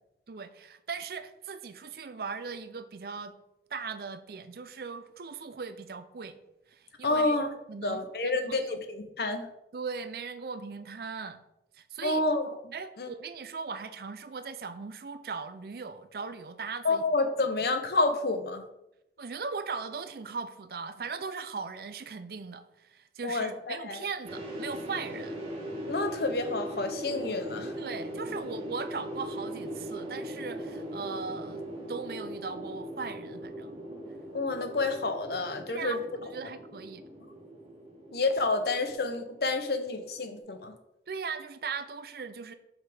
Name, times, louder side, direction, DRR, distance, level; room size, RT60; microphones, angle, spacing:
voice 1, 0.3-3.3 3.7-6.4 6.7-7.4 7.7-8.8 9.7-11.4 11.7-12.2 12.7-17.0 19.2-25.4 27.8-31.6 31.9-33.7 35.6-37.0 41.1-42.5, right 5 dB, 60° right, 11 dB, 0.5 m, -39 dB
voice 2, 7.0-7.5 7.8-9.5 12.0-13.1 16.8-18.6 23.2-24.0 25.9-27.7 34.3-36.0 38.1-40.7, left 3 dB, 65° left, 7 dB, 0.7 m, -29 dB
sound 1, 24.2-40.4, equal, 35° right, 2.0 m, -40 dB
5.7 x 5.6 x 3.4 m, 0.88 s
head